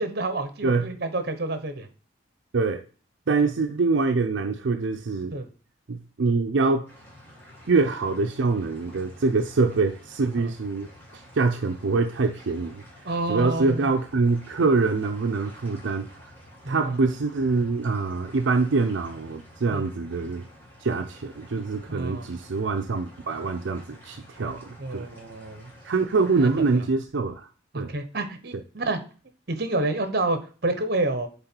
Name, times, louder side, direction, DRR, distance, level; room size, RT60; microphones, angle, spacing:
voice 1, 0.0-1.9 5.3-5.5 13.0-13.9 16.6-17.0 19.7-19.9 21.9-22.3 24.8-25.7 26.4-26.6 27.7-29.0 29.5-31.3, right 2 dB, 55° right, 1.0 m, -28 dB
voice 2, 3.3-5.4 5.9-6.9 7.7-10.9 11.1-12.8 13.3-16.3 16.7-20.4 20.8-25.1 25.8-27.5 27.7-27.9, right 3 dB, 75° right, 0.5 m, -24 dB
sound 1, 6.9-26.8, equal, 10° left, 2.0 m, -50 dB
7.7 x 3.6 x 4.5 m
head